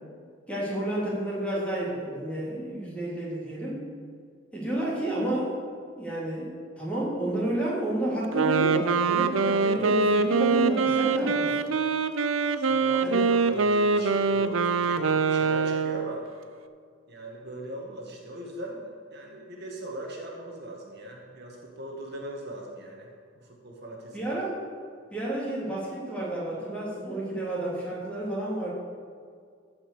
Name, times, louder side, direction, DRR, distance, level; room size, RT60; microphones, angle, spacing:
voice 1, 0.5-3.8 4.5-5.5 6.0-11.7 13.0-13.2 24.1-24.6 25.1-28.7, right 1 dB, 5° left, -6 dB, 3.2 m, -30 dB
Wind instrument woodwind instrument, 8.2-16.1, right 4 dB, 90° right, 0.6 m, -24 dB
voice 2, 12.6-16.2 17.1-24.3, right 1 dB, 55° right, -1 dB, 1.7 m, -40 dB
14.5 x 5.5 x 6.8 m, 2.1 s
head